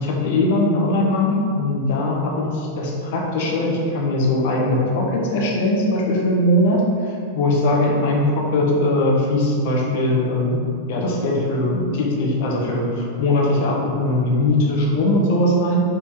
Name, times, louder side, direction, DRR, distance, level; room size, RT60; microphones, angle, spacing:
voice 1, 0.0-2.5 2.8-6.8 7.3-10.6 10.9-15.8, left 1 dB, 50° left, -2 dB, 1.3 m, -20 dB
5.6 x 4.4 x 4.5 m, 2.4 s
figure-of-eight pair, 90°, 0 cm